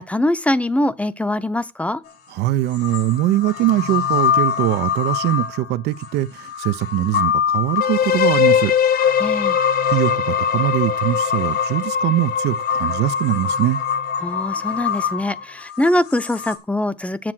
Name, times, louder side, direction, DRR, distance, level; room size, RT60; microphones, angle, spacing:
voice 1, 0.0-2.0 9.2-9.6 14.2-17.3, left 1 dB, 10° left, 0.7 m, -22 dB
sound 1, 2.1-2.2 2.7-16.6, left 8 dB, 80° left, 3.0 m, -26 dB
voice 2, 2.3-8.7 9.9-13.8, right 15 dB, 85° right, 0.6 m, -22 dB
sound 2, 7.8-15.6, left 7 dB, 60° left, 0.7 m, -22 dB
7.7 x 7.5 x 6.1 m
cardioid pair, 110°, 17 cm